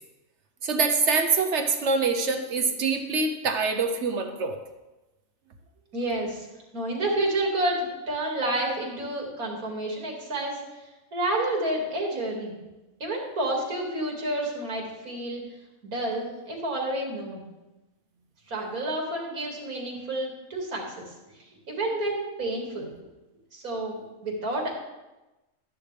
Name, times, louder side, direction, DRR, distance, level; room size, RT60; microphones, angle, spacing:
voice 1, 0.6-4.6, right 4 dB, 55° right, 6 dB, 1.1 m, -25 dB
voice 2, 5.9-6.5 6.7-10.6 11.1-12.5 13.0-15.4 15.8-17.4 18.5-21.1 21.7-22.9 23.5-24.7, right 1 dB, 85° right, -1 dB, 2.7 m, -29 dB
13.0 x 10.5 x 3.4 m, 1.1 s
omnidirectional pair, 1.5 m